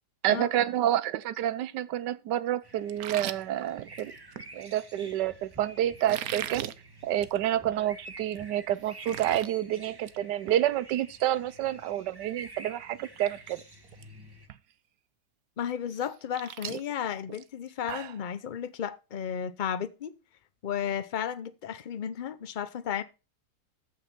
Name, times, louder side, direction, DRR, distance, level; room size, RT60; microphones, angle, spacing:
voice 1, 0.2-4.1 4.5-6.6 7.0-13.6, right 12 dB, 90° right, 1.3 m, -29 dB
sound 1, 2.6-14.5, right 1 dB, 15° right, 1.2 m, -50 dB
sound 2, 2.9-4.5 6.0-6.7 7.1-7.4 7.7-7.8 8.3-8.4 8.7-9.5 9.9-10.2 10.5-10.6 12.5-12.6 13.0-13.3 13.6-14.0 14.5-14.6 15.9-18.2, right 11 dB, 65° right, 1.1 m, -39 dB
voice 2, 15.6-20.1 20.6-23.0, left 8 dB, 60° left, 0.5 m, -33 dB
14.0 x 6.1 x 4.4 m
omnidirectional pair, 1.8 m